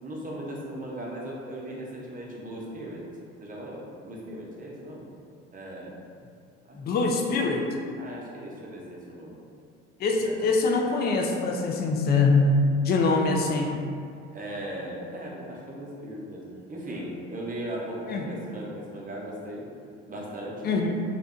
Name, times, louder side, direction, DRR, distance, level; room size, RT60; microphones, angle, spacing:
voice 1, 0.0-3.1 3.4-5.1 5.5-6.0 6.7-6.8 8.0-9.4 10.2-10.4 12.9-13.3 14.3-19.6 20.1-20.7, right 1 dB, 25° right, -3 dB, 0.6 m, -38 dB
voice 2, 6.7-7.6 10.0-12.5 12.8-13.8 18.1-18.2 20.6-20.9, left 4 dB, 30° left, 1 dB, 0.3 m, -24 dB
2.6 x 2.1 x 2.4 m, 2.3 s
hypercardioid pair, 60°, 35 cm